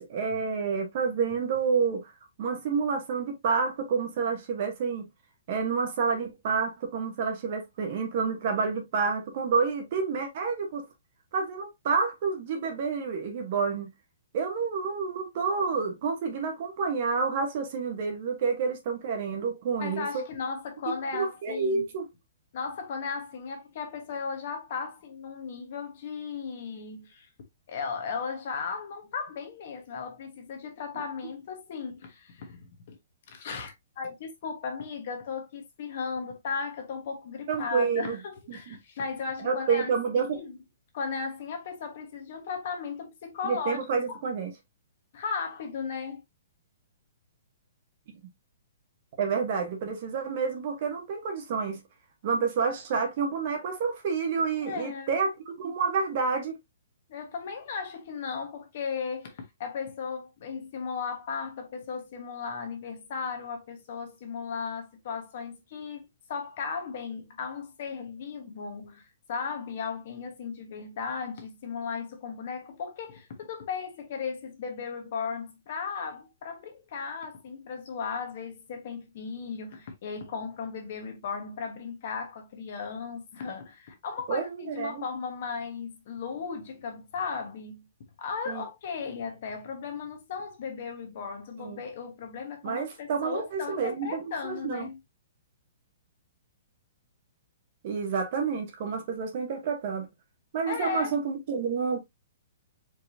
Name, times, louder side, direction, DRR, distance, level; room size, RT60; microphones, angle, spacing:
voice 1, 0.0-2.1 2.4-5.1 5.5-10.8 11.3-13.9 14.3-20.2 21.1-22.1 37.5-38.2 38.5-38.8 39.4-40.4 43.4-44.5 49.2-51.8 52.2-56.5 84.3-85.0 88.5-88.6 91.6-91.8 92.6-94.9 97.8-100.1 100.5-102.0, right 5 dB, 35° right, 1.1 m, -29 dB
voice 2, 19.8-21.8 22.5-27.3 27.7-32.9 33.3-39.9 40.3-40.6 40.9-43.8 44.1-44.2 45.1-46.2 54.6-55.1 57.1-87.9 88.2-95.0 100.7-101.1, left 5 dB, 40° left, 1.2 m, -36 dB
4.7 x 3.7 x 2.6 m
hypercardioid pair, 180°, 0 cm